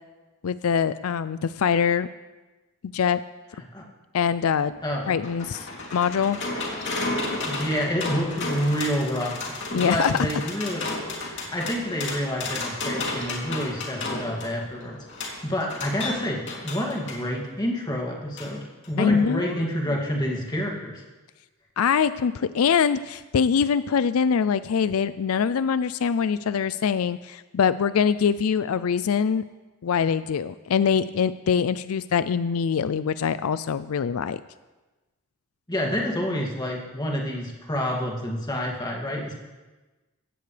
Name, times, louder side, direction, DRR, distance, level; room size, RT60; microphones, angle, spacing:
voice 1, 0.4-2.1 2.9-3.2 4.1-4.7 5.1-6.4 9.7-10.1 19.0-19.6 21.8-29.4 29.8-34.4, left 7 dB, 80° left, 14 dB, 0.4 m, -23 dB
sound 1, 4.7-17.2 18.4-18.5 18.8-18.9, left 2 dB, 55° left, 3.0 m, -33 dB
voice 2, 7.4-9.4 9.7-10.9 11.1-15.0 15.4-21.0 35.7-39.3, equal, 20° left, -2 dB, 2.4 m, -28 dB
16.5 x 16.0 x 3.4 m, 1.2 s
head